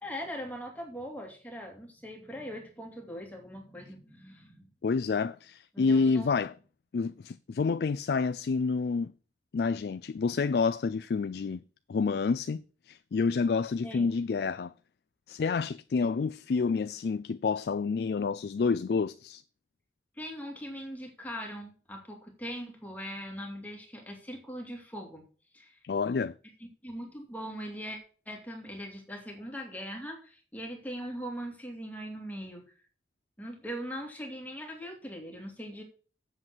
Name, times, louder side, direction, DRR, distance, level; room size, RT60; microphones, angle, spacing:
voice 1, 0.0-4.7 5.7-6.3 13.8-14.1 16.0-16.1 20.2-25.2 25.5-25.8 26.6-28.0 28.3-32.6 33.4-35.8, equal, 10° left, 2.4 m, -41 dB
voice 2, 4.8-6.5 6.9-9.1 9.5-11.6 11.9-14.7 15.3-19.4 25.8-26.4, left 4 dB, 65° left, 0.4 m, -28 dB
7.8 x 7.5 x 6.1 m
head